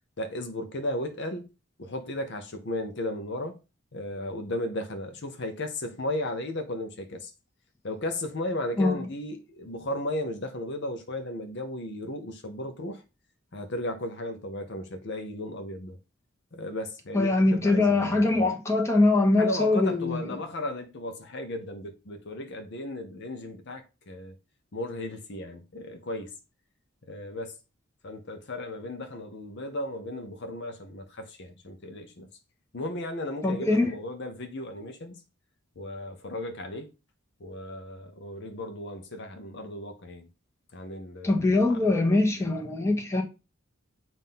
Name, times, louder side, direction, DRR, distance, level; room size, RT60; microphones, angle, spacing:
voice 1, 0.2-1.5 1.8-3.6 3.9-7.3 7.8-13.0 13.5-16.0 16.5-18.5 19.4-24.3 24.7-26.3 27.1-27.6 28.0-32.3 32.7-35.1 35.8-36.9 37.4-40.3 40.7-41.9, left 1 dB, 60° left, 0.8 m, -35 dB
voice 2, 17.1-20.3 33.4-33.9 41.2-43.2, left 2 dB, 15° left, 1.2 m, -23 dB
7.4 x 2.7 x 5.5 m
head